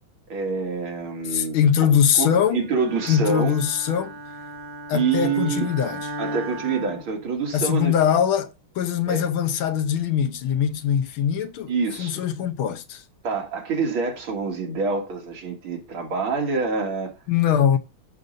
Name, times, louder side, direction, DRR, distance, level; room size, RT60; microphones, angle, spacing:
voice 1, 0.3-1.6 2.2-3.6 4.9-5.7 6.2-7.9 9.1-9.2 11.7-12.2 13.2-17.1, right 4 dB, 80° right, 2.9 m, -26 dB
voice 2, 1.2-2.7 3.1-4.1 4.9-6.0 7.5-11.7 12.0-13.0 17.3-17.8, left 8 dB, 85° left, 1.7 m, -22 dB
Bowed string instrument, 2.7-7.7, right 1 dB, 50° right, 5.2 m, -37 dB
13.5 x 6.4 x 2.6 m
omnidirectional pair, 2.2 m